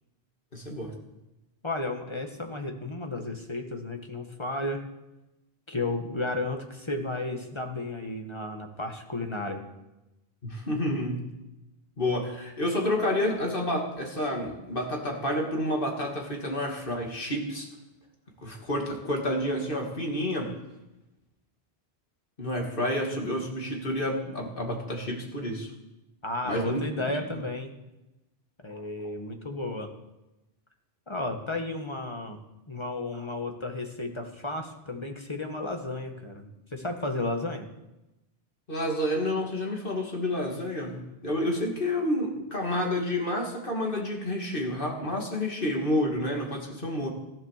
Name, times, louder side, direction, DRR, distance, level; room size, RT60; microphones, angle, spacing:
voice 1, 0.5-0.9 10.4-11.3 12.0-17.7 18.4-20.5 22.4-25.7 26.4-27.4 38.7-47.1, left 1 dB, 50° left, 0 dB, 2.9 m, -29 dB
voice 2, 1.6-4.8 5.7-9.6 26.2-27.7 28.6-29.9 31.1-32.4 32.7-37.7, left 2 dB, 25° left, 4 dB, 1.7 m, -33 dB
14.5 x 12.0 x 6.7 m, 0.96 s
omnidirectional pair, 1.1 m